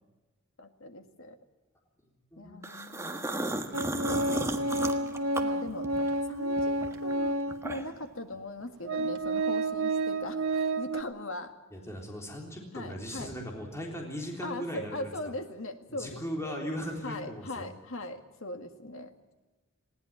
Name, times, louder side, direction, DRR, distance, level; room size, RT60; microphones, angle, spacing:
voice 1, 0.6-1.4 2.4-3.6 3.9-5.9 6.3-7.4 7.6-11.5 12.7-13.3 14.4-16.6 17.0-19.1, left 2 dB, 70° left, 7 dB, 1.9 m, -40 dB
sound 1, 2.6-6.2 6.6-8.1, right 2 dB, 15° right, 1.5 m, -34 dB
Organ, 3.7-7.7 8.3-8.4 8.8-11.0, right 2 dB, 85° right, 1.4 m, -30 dB
voice 2, 11.7-15.1 15.9-17.7, equal, 15° left, 0 dB, 3.6 m, -38 dB
19.5 x 17.5 x 8.7 m, 1.2 s
head